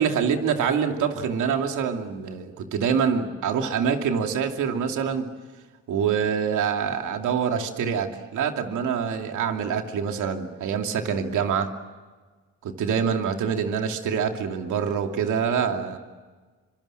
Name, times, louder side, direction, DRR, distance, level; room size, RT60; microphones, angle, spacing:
voice 1, 0.0-5.3 5.9-11.7 12.6-16.0, right 7 dB, 80° right, 4 dB, 2.7 m, -25 dB
26.0 x 25.5 x 7.7 m, 1.4 s
cardioid pair, 90°, 30 cm